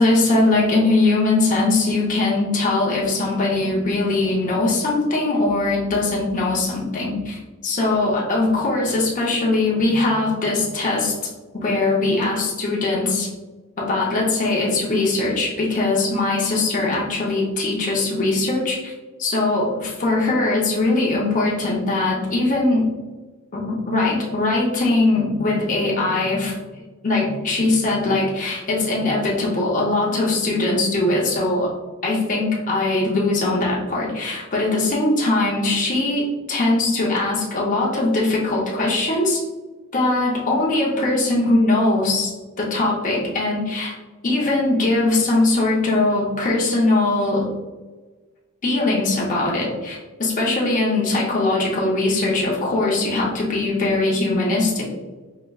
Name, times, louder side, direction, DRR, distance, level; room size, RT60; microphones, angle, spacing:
voice 1, 0.0-11.1 11.5-13.3 13.8-18.9 19.2-22.9 23.5-31.7 32.0-39.4 39.9-43.9 44.2-47.5 48.6-54.9, left 2 dB, 40° left, -4 dB, 0.7 m, -21 dB
4.8 x 2.2 x 2.3 m, 1.2 s
head